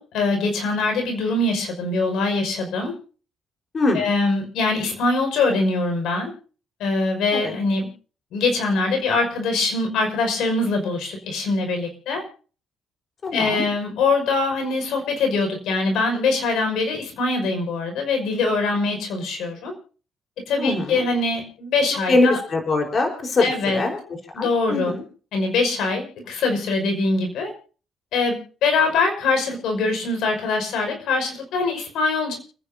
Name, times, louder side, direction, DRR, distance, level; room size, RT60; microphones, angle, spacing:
voice 1, 0.0-3.0 3.9-6.3 6.8-7.9 8.3-12.2 13.3-19.7 20.5-22.4 23.4-23.8 24.3-24.9 25.3-27.5 28.1-32.4, left 3 dB, 85° left, 4 dB, 5.6 m, -23 dB
voice 2, 13.2-13.6 20.6-21.1 22.1-24.0 24.4-25.0, left 2 dB, 45° left, 3 dB, 4.3 m, -22 dB
30.0 x 10.0 x 2.8 m, 0.39 s
cardioid pair, 90°, 0 cm